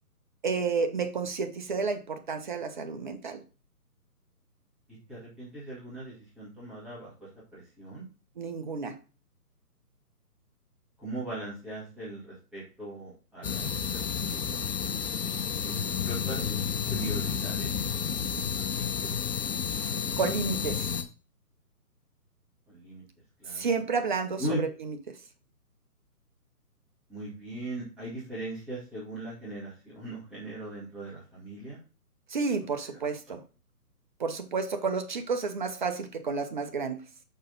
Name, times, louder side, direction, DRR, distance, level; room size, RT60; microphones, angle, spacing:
voice 1, 0.4-3.4 8.4-9.0 20.2-20.9 23.5-25.0 32.3-33.4 34.2-37.0, right 4 dB, 30° right, 7 dB, 0.8 m, -31 dB
voice 2, 5.1-7.1 7.5-8.0 11.0-15.0 15.6-16.4 16.9-19.0 22.7-23.0 23.4-23.7 24.4-24.6 27.1-31.8, right 1 dB, ahead, -10 dB, 2.1 m, -39 dB
sound 1, 13.4-21.0, left 6 dB, 75° left, 1.2 m, -31 dB
6.5 x 4.9 x 3.9 m, 0.34 s
figure-of-eight pair, 150°, 47 cm